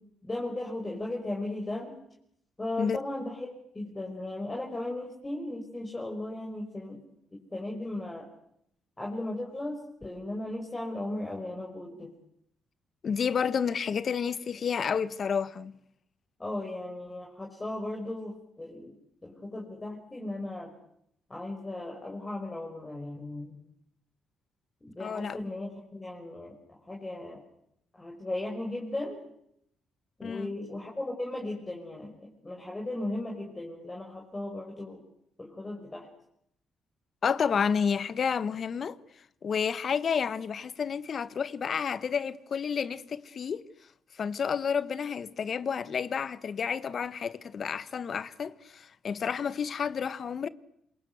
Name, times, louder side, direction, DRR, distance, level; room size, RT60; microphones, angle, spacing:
voice 1, 0.2-2.0 2.6-7.0 7.3-8.3 9.0-12.1 16.4-18.9 19.2-20.7 21.3-23.6 24.8-26.6 26.9-27.4 27.9-29.2 30.2-35.0 35.4-36.1, left 1 dB, 20° left, 5.7 m, -36 dB
voice 2, 13.0-15.7 25.0-25.4 30.2-30.5 37.2-39.0 39.4-43.6 44.1-50.5, left 6 dB, 50° left, 1.3 m, -30 dB
27.0 x 23.0 x 8.1 m
cardioid pair, 90°, 0 cm